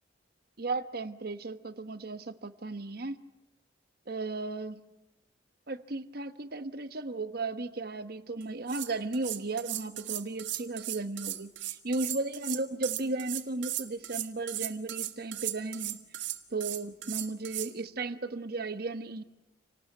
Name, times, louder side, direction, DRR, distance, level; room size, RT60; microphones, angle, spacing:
voice 1, 0.6-3.2 4.1-4.8 5.7-16.0 16.5-19.2, right 3 dB, 55° right, 10 dB, 1.1 m, -35 dB
sound 1, 8.4-8.5 8.7-17.7, right 13 dB, 75° right, 1.7 m, -36 dB
28.5 x 19.0 x 9.3 m, 0.94 s
head